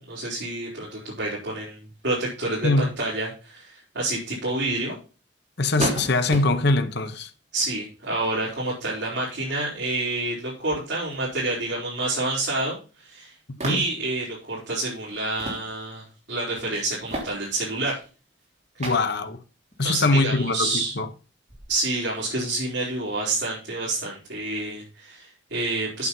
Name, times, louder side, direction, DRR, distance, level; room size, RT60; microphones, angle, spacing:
voice 1, 0.1-5.0 7.5-13.3 13.6-18.0 19.8-20.9 21.7-26.1, right 2 dB, 60° right, 4.4 m, -28 dB
voice 2, 5.6-7.3 13.6-13.8 18.8-19.4 19.8-21.1, left 2 dB, 60° left, 1.1 m, -22 dB
sound 1, 5.8-6.8 7.9-8.7 9.1-9.7 10.1-10.2 10.6-11.7 12.0-12.7 13.6-14.2 15.1-15.7 16.1-16.2 16.5-18.4 18.8-19.2 19.7-20.3 20.8-20.9 21.5-23.2, right 1 dB, 35° right, 3.2 m, -35 dB
8.5 x 6.8 x 5.5 m
head